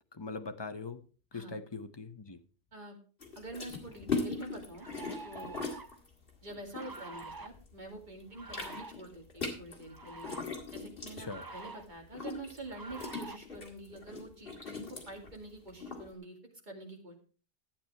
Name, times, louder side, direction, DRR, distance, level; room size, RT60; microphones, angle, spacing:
voice 1, 0.1-1.0 1.3-2.4 11.3-11.4, left 3 dB, 25° left, 8 dB, 0.8 m, -41 dB
sound 1, 3.2-7.7 8.0-16.1, left 4 dB, 55° left, 2.3 m, -40 dB
voice 2, 3.4-4.9 5.2-5.7 6.4-10.3 10.7-16.4 16.7-17.1, right 2 dB, 40° right, 1 dB, 2.6 m, -46 dB
sound 2, 3.9-4.0 4.8-6.0 6.8-7.5 8.3-8.9 9.8-10.4 11.2-11.9 12.7-13.4, right 3 dB, 25° right, 0.6 m, -46 dB
11.5 x 8.6 x 4.5 m, 0.40 s
omnidirectional pair, 1.2 m